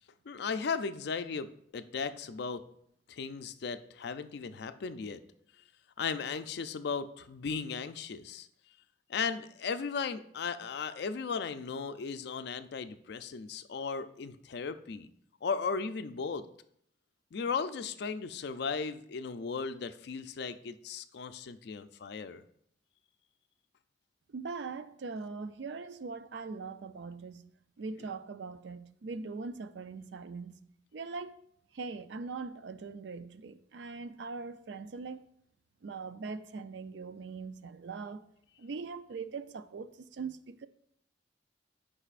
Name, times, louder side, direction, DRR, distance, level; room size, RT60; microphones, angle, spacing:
voice 1, 0.3-1.5 1.7-2.6 3.1-5.2 6.0-8.5 9.1-15.1 15.4-16.4 17.3-22.4, left 5 dB, 60° left, 0.4 m, -36 dB
voice 2, 24.3-27.4 27.8-30.6 30.9-31.4 31.7-35.3 35.8-38.3 38.6-40.7, right 4 dB, 65° right, 0.4 m, -41 dB
9.9 x 5.5 x 2.5 m
head